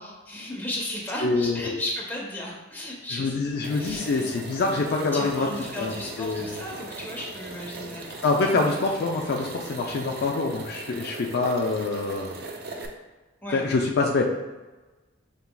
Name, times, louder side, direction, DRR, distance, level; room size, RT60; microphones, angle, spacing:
voice 1, 0.3-4.2 5.1-8.5 13.4-13.6, left 1 dB, 10° left, -3 dB, 0.8 m, -35 dB
voice 2, 1.2-1.8 3.1-5.5 5.8-6.6 8.2-12.3 13.5-14.2, left 3 dB, 55° left, 0 dB, 0.4 m, -25 dB
sound 1, 3.6-12.9, right 2 dB, 50° right, 0.5 m, -39 dB
5.6 x 2.9 x 2.2 m, 1.2 s
head